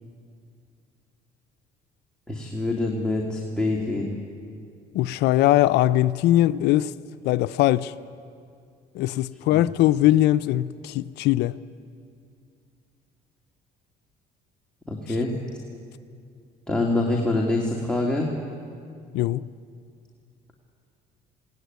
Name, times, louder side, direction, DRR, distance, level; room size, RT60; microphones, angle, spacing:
voice 1, 2.3-4.1 9.5-9.6 14.9-15.3 16.7-18.3, left 2 dB, 5° left, 2.4 m, -25 dB
voice 2, 4.9-6.9 7.2-7.9 8.9-11.6 19.1-19.5, left 14 dB, 85° left, 0.5 m, -21 dB
21.5 x 18.0 x 9.4 m
cardioid pair, 110°, 17 cm